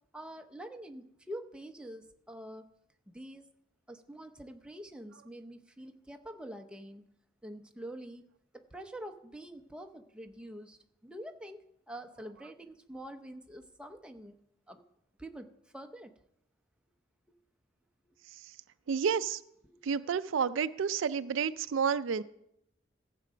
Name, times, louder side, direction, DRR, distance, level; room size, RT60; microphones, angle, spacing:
voice 1, 0.1-2.7 3.1-3.4 3.9-7.0 7.4-8.3 8.5-14.4 14.7-14.8 15.2-15.5 15.7-16.1 18.1-18.2 19.6-19.8, right 1 dB, 5° right, 5 dB, 0.7 m, -46 dB
voice 2, 18.9-19.4 19.8-22.2, right 6 dB, 85° right, 14 dB, 0.4 m, -30 dB
15.0 x 7.6 x 5.0 m, 0.80 s
head